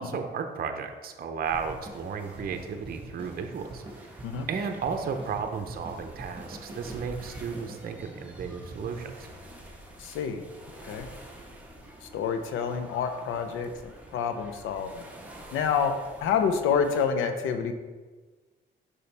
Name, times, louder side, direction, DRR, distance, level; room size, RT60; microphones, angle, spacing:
voice 1, 0.0-3.8 4.5-9.3, right 6 dB, 50° right, 5 dB, 0.7 m, -34 dB
sound 1, 1.4-17.0, right 1 dB, 5° right, 1.3 m, -48 dB
sound 2, 1.5-10.4, right 2 dB, 25° right, 1.5 m, -45 dB
voice 2, 10.0-10.4 10.8-11.1 12.0-15.1 15.5-15.9 16.2-17.7, left 6 dB, 85° left, 7 dB, 0.7 m, -28 dB
6.8 x 5.4 x 3.4 m, 1.3 s
cardioid pair, 90°, 20 cm